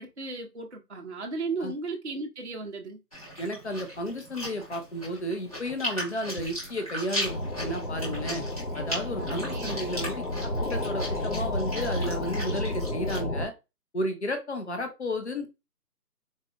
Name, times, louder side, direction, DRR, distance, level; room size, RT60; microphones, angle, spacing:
voice 1, 0.0-3.0 9.2-9.8, right 3 dB, 45° right, 0.5 m, -35 dB
Chewing mastication, 3.1-13.2, equal, 25° left, 1.0 m, -38 dB
voice 2, 3.4-8.4 8.7-13.5 13.9-15.5, left 1 dB, 45° left, 0.6 m, -33 dB
sound 1, 7.2-13.5, left 1 dB, 75° left, 1.5 m, -31 dB
4.0 x 2.3 x 2.3 m
figure-of-eight pair, 175°, 48 cm